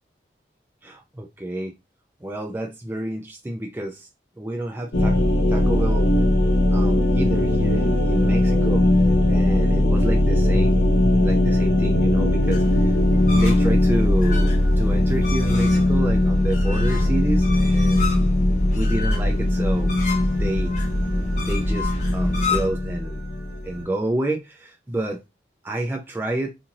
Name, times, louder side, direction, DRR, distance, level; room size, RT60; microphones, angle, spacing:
voice 1, 0.8-1.7 2.2-4.1 4.4-5.2 5.5-6.1 6.7-13.0 13.3-18.3 18.8-19.9 20.4-20.8 21.4-23.2 23.6-25.2 25.6-26.5, right 1 dB, 10° right, 0.3 m, -29 dB
sound 1, 4.9-23.8, left 1 dB, 80° left, 0.7 m, -19 dB
sound 2, 12.5-22.7, left 1 dB, 45° left, 0.7 m, -29 dB
2.6 x 2.5 x 2.8 m
head